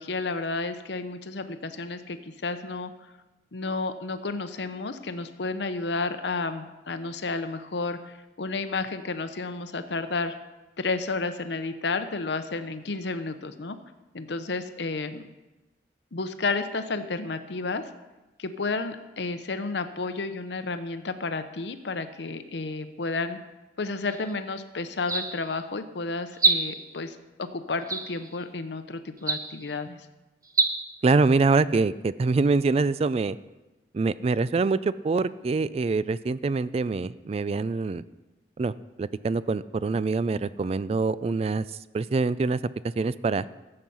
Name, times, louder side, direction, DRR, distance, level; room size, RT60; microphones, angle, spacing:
voice 1, 0.0-2.9 3.5-10.3 10.8-13.8 14.1-15.3 16.1-17.8 18.4-23.4 23.8-30.0, left 3 dB, 80° left, 10 dB, 0.8 m, -31 dB
sound 1, 24.1-24.3 25.0-25.6 26.3-27.0 27.9-28.4 29.2-29.7 30.4-30.7, right 3 dB, 20° right, 0.8 m, -26 dB
voice 2, 31.0-33.4 33.9-38.0 38.6-42.6 43.0-43.5, right 4 dB, 35° right, 16 dB, 0.3 m, -25 dB
14.5 x 7.7 x 5.5 m, 1.1 s
head